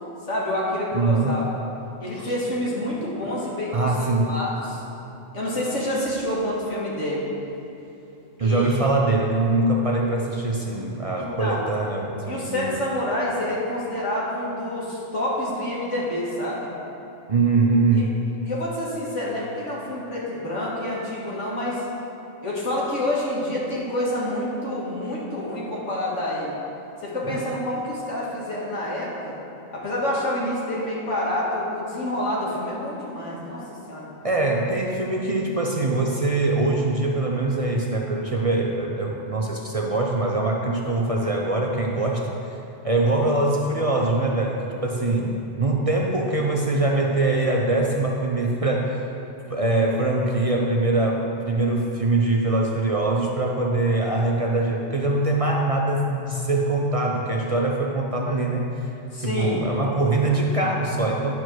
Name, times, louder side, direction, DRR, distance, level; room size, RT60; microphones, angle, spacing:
voice 1, 0.3-1.5 2.0-4.8 5.3-7.2 8.4-8.9 11.2-11.6 12.2-16.7 17.9-18.1 18.4-21.8 22.4-26.5 27.0-29.4 29.7-34.1 43.2-43.3 59.1-59.6, left 1 dB, 75° left, -6 dB, 2.2 m, -28 dB
voice 2, 0.9-1.4 2.1-2.3 3.7-4.3 8.4-12.8 17.3-18.1 27.3-27.4 34.2-42.5 42.8-49.0 49.5-58.7 59.2-61.3, right 2 dB, 40° right, -1 dB, 0.5 m, -23 dB
10.5 x 4.5 x 6.1 m, 2.9 s
omnidirectional pair, 1.3 m